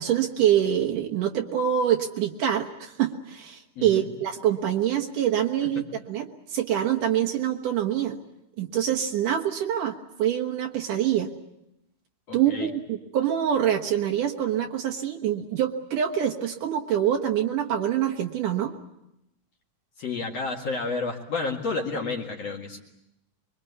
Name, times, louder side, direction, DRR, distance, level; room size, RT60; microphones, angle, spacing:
voice 1, 0.0-8.2 8.6-11.3 12.3-18.8, right 10 dB, 65° right, 1 dB, 2.6 m, -25 dB
voice 2, 3.8-4.1 5.8-5.9 12.3-12.7 20.0-22.8, left 3 dB, 50° left, 0 dB, 2.5 m, -31 dB
25.0 x 23.5 x 8.3 m, 0.85 s
omnidirectional pair, 4.5 m